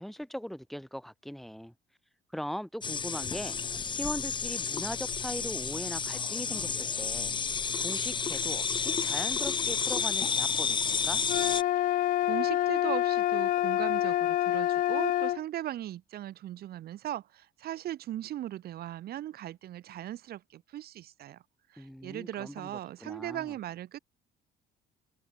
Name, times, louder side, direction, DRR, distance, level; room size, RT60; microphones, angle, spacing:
voice 1, 0.0-1.7 2.3-3.6 3.9-11.2 21.8-23.5, equal, ahead, 7.9 m, -40 dB
sound 1, 2.8-11.6, left 6 dB, 30° left, 1.0 m, -31 dB
sound 2, 11.3-15.4, left 14 dB, 55° left, 0.4 m, -27 dB
voice 2, 11.8-21.4 21.7-24.0, right 13 dB, 65° right, 4.6 m, -38 dB
cardioid pair, 110°, 17 cm